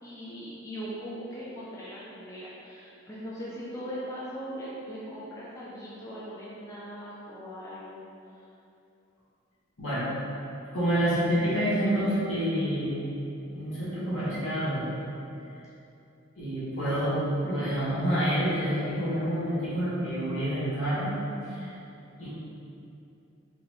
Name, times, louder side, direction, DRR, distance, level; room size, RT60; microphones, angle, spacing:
voice 1, 0.0-8.0 8.3-8.5, equal, 15° left, -8 dB, 0.4 m, -40 dB
voice 2, 9.8-10.1 10.7-12.9 13.5-14.9 16.4-17.2 17.4-21.1 21.5-21.7 22.2-22.3, equal, 70° left, -10 dB, 1.3 m, -28 dB
3.6 x 2.9 x 3.0 m, 2.7 s
head